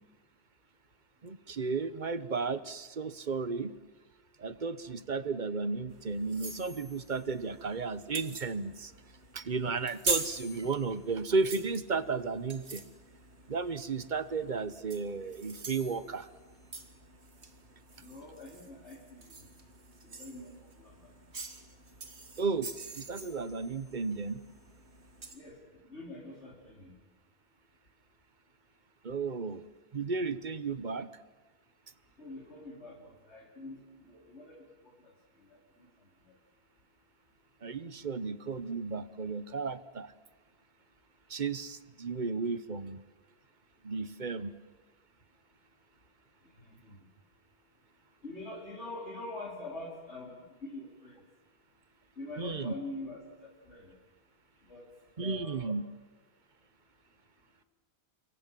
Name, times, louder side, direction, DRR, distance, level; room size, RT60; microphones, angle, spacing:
voice 1, 1.2-3.7 4.4-8.9 9.3-12.8 13.5-16.3 22.4-24.4 29.0-29.7 29.9-31.1 37.6-40.1 41.3-43.0 43.8-44.5 52.4-52.7 55.2-55.8, right 4 dB, 45° right, 14 dB, 1.1 m, -34 dB
sound 1, 5.9-25.4, right 4 dB, 75° right, 2.4 m, -43 dB
voice 2, 18.0-19.3 20.0-20.5 20.8-20.9 25.3-25.6 25.9-26.9 32.2-35.1 35.4-35.9 36.2-36.3 46.6-47.0 48.2-51.2 52.1-53.2 53.7-53.9 54.7-54.8 55.2-55.8, left 2 dB, 85° left, -2 dB, 4.8 m, -45 dB
28.0 x 23.0 x 7.6 m, 1.2 s
omnidirectional pair, 1.1 m